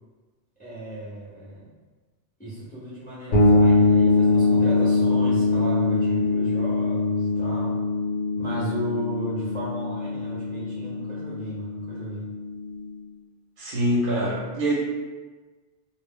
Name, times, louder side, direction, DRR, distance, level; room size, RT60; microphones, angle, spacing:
voice 1, 0.6-1.7 2.4-7.8 8.4-12.2, right 1 dB, 10° left, -9 dB, 0.6 m, -34 dB
sound 1, 3.3-12.9, left 2 dB, 60° left, 0.9 m, -23 dB
voice 2, 13.6-14.7, equal, 60° right, -6 dB, 0.7 m, -24 dB
2.0 x 2.0 x 3.5 m, 1.3 s
omnidirectional pair, 1.2 m